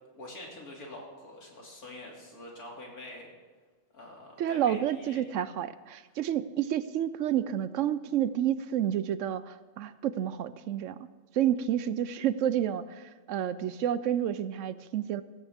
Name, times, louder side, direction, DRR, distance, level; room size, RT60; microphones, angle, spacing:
voice 1, 0.1-3.3 3.9-5.2, left 1 dB, 90° left, -2 dB, 3.3 m, -45 dB
voice 2, 4.4-11.1 11.3-15.2, right 10 dB, 65° right, 15 dB, 0.9 m, -30 dB
17.0 x 14.5 x 3.6 m, 1.3 s
omnidirectional pair, 1.5 m